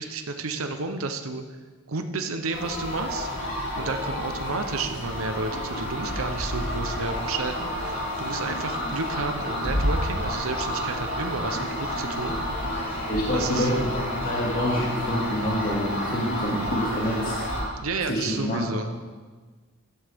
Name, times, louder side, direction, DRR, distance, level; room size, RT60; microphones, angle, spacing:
voice 1, 0.0-1.4 1.9-3.3 3.8-12.4 13.3-13.7 17.8-18.9, right 3 dB, 90° right, 7 dB, 0.8 m, -31 dB
sound 1, 2.5-17.6, equal, 65° left, 5.0 m, -30 dB
voice 2, 13.1-13.9 14.2-17.5 18.1-18.8, equal, 45° left, -5 dB, 2.3 m, -27 dB
16.0 x 12.5 x 3.6 m, 1.4 s
head